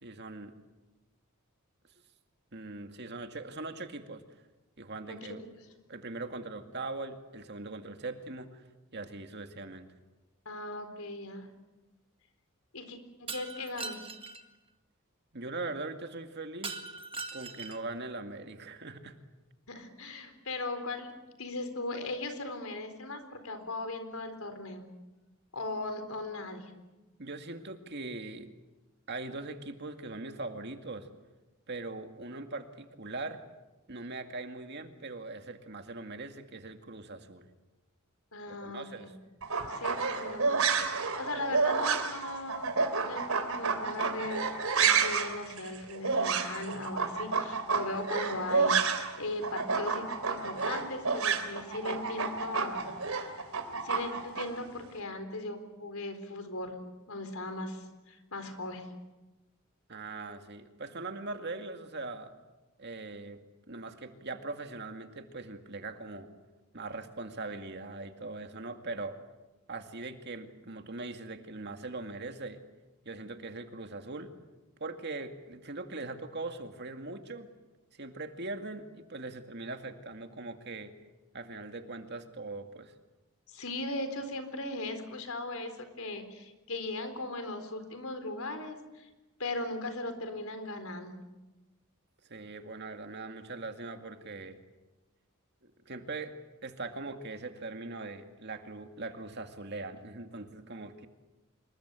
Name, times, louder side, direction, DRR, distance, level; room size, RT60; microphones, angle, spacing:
voice 1, 0.0-0.5 2.5-4.2 4.8-5.5 5.9-8.6 8.9-9.9 15.3-16.8 17.3-19.2 27.2-28.5 29.1-31.1 31.7-33.4 33.9-37.5 38.6-39.1 59.9-62.3 62.8-63.4 63.7-66.3 66.7-69.2 69.7-72.6 73.1-74.4 74.8-77.5 77.9-80.9 81.3-82.9 92.3-94.6 95.6-101.1, right 3 dB, 50° right, 6 dB, 2.2 m, -41 dB
voice 2, 10.5-11.5 12.7-14.0 19.7-21.1 21.4-24.8 25.5-26.7 38.3-39.1 39.7-42.7 43.1-52.8 53.8-56.7 57.1-58.9 83.5-89.1 89.4-91.1, left 2 dB, 80° left, 8 dB, 4.2 m, -38 dB
Shatter, 13.3-14.4 16.6-17.9, right 4 dB, 25° right, 1.8 m, -40 dB
sound 1, 39.4-49.2 49.4-54.5, right 5 dB, 80° right, 3.3 m, -30 dB
26.5 x 22.0 x 8.3 m, 1.1 s
head